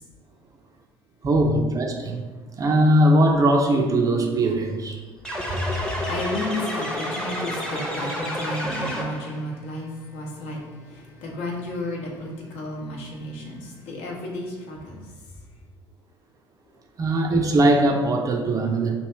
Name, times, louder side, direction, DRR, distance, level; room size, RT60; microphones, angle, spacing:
voice 1, 1.2-2.2 2.6-5.0 17.0-18.9, right 1 dB, 30° right, 3 dB, 0.5 m, -20 dB
sound 1, 5.2-9.4, equal, 5° left, 0.8 m, -30 dB
voice 2, 5.3-15.1, left 1 dB, 55° left, -2 dB, 0.9 m, -32 dB
3.0 x 2.8 x 4.4 m, 1.3 s
figure-of-eight pair, 60°, 13 cm